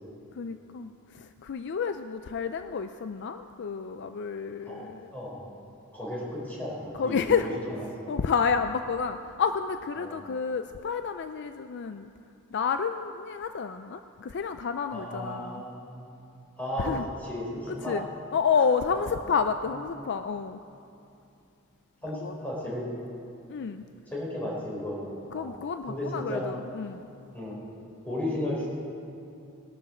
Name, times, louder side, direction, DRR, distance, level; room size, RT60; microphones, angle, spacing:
voice 1, 0.3-5.1 7.0-7.5 8.1-12.1 12.5-15.6 16.8-17.1 17.7-18.1 18.3-20.6 22.1-22.3 23.5-23.8 25.3-27.1, left 6 dB, 55° left, 9 dB, 0.4 m, -30 dB
voice 2, 4.7-5.5 5.9-7.2 8.0-8.2 10.0-10.1 14.9-16.2 16.6-16.9 17.2-18.0 18.9-19.1 22.0-22.9 24.1-25.5 25.9-26.5 27.3-27.6 28.0-28.7, left 1 dB, 10° left, -6 dB, 4.4 m, -34 dB
19.5 x 12.5 x 4.4 m, 2.6 s
head